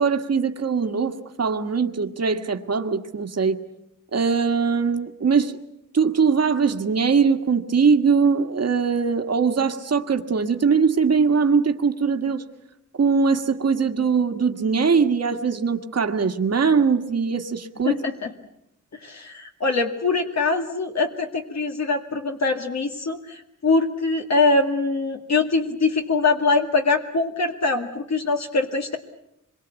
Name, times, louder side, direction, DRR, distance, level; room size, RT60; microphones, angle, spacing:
voice 1, 0.0-3.6 4.1-5.6 5.9-12.5 12.9-17.9, right 5 dB, 55° right, 1.7 m, -21 dB
voice 2, 17.9-18.3 19.0-29.0, left 3 dB, 60° left, 2.0 m, -23 dB
26.5 x 23.0 x 8.2 m
wide cardioid pair, 130°, 31 cm